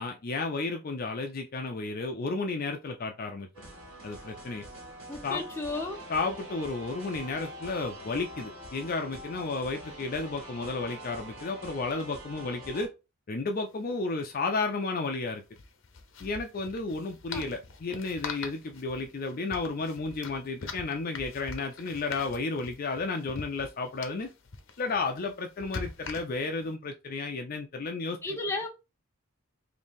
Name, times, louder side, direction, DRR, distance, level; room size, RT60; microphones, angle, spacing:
voice 1, 0.0-3.5 4.0-4.6 5.2-5.4 6.1-12.9 13.3-15.4 16.2-24.3 24.8-28.2, left 3 dB, 45° left, 0.5 m, -32 dB
sound 1, 3.5-12.9, equal, 85° right, 2.3 m, -44 dB
voice 2, 5.1-6.0 17.3-17.4 28.2-28.7, left 2 dB, 10° left, 0.8 m, -33 dB
sound 2, 13.5-13.6 13.8-14.0 15.5-26.7, left 4 dB, 65° left, 0.8 m, -43 dB
3.8 x 2.7 x 3.6 m
head